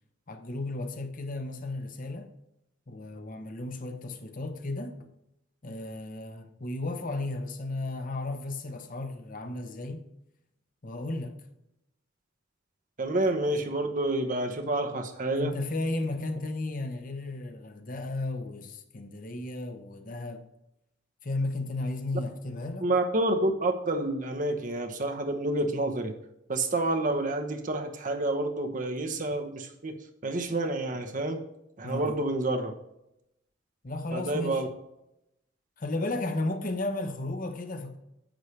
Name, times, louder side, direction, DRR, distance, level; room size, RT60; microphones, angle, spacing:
voice 1, 0.3-2.3 2.9-5.1 5.6-10.0 10.8-11.3 15.4-20.5 21.2-22.9 31.8-32.2 33.8-34.6 35.8-38.0, left 2 dB, 45° left, 1.0 m, -34 dB
voice 2, 13.0-15.5 22.8-26.1 26.5-30.0 30.2-31.4 31.8-32.7 34.1-34.7, right 2 dB, 45° right, 1.0 m, -28 dB
10.0 x 8.1 x 3.3 m
head